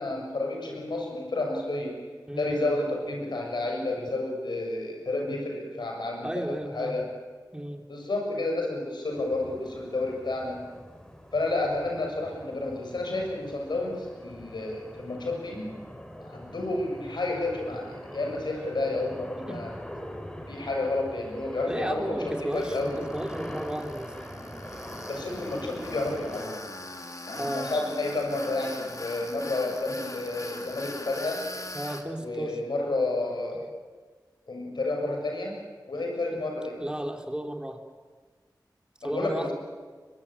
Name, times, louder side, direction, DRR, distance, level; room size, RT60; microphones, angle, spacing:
voice 1, 0.0-1.9 2.4-6.4 6.7-7.0 7.9-10.6 11.3-15.7 16.2-19.7 20.5-22.9 25.1-26.6 27.3-31.4 32.2-33.6 34.5-35.5 35.9-36.8 39.0-39.5, left 2 dB, 80° left, 1 dB, 6.8 m, -30 dB
voice 2, 2.3-2.7 6.2-6.9 7.5-7.9 19.5-19.6 21.6-24.1 27.4-27.7 31.7-32.6 36.3-36.4 36.8-37.8 39.0-39.5, right 1 dB, 10° right, 4 dB, 3.3 m, -33 dB
sound 1, 9.1-26.5, equal, 10° left, 3.7 m, -43 dB
Tools, 22.5-32.0, left 2 dB, 45° left, 2.6 m, -41 dB
23.0 x 22.5 x 8.8 m, 1.4 s
cardioid pair, 45°, 8 cm